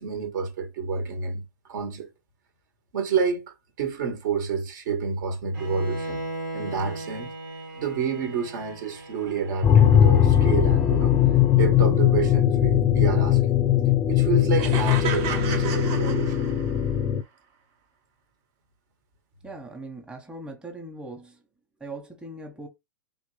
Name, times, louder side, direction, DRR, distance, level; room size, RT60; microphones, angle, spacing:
voice 1, 0.0-1.4 1.7-2.1 2.9-6.2 6.5-7.3 7.7-11.2 11.5-13.4 14.1-16.5, right 5 dB, 60° right, 1.6 m, -28 dB
Bowed string instrument, 5.5-11.6, right 1 dB, 80° right, 2.0 m, -38 dB
sound 1, 9.6-17.2, left 10 dB, 30° left, 0.5 m, -20 dB
sound 2, 14.6-16.9, right 7 dB, 45° right, 1.3 m, -33 dB
voice 2, 19.4-21.4 21.8-22.7, right 2 dB, 10° right, 1.2 m, -40 dB
3.6 x 3.5 x 3.3 m
hypercardioid pair, 105°, 11 cm